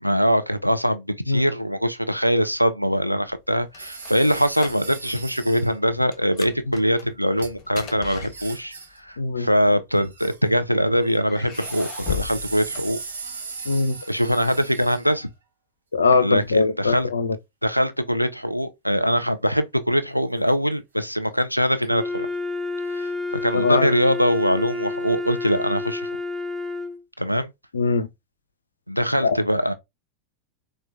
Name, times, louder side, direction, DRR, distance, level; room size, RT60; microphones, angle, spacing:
voice 1, 0.0-8.7 9.0-13.0 14.1-15.3 16.2-17.1 17.6-22.3 22.9-26.1 27.2-27.5 28.9-29.7, equal, 90° right, 0.3 m, -22 dB
sound 1, 3.3-5.2 5.5-5.7 6.1-8.9 9.8-10.6 11.2-13.5, left 11 dB, 30° left, 0.8 m, -38 dB
sound 2, 3.8-5.8 7.4-7.5 8.3-9.1 9.9-10.6 11.0-15.3 21.4-21.5 21.8-21.9, right 4 dB, 70° right, 0.7 m, -38 dB
voice 2, 9.2-9.5 13.7-14.0 15.9-17.4 23.5-23.9 27.7-28.1 29.2-29.4, left 4 dB, 70° left, 0.3 m, -21 dB
Wind instrument woodwind instrument, 21.9-27.0, left 3 dB, ahead, 0.5 m, -29 dB
4.4 x 2.1 x 2.3 m
figure-of-eight pair, 90°, 0 cm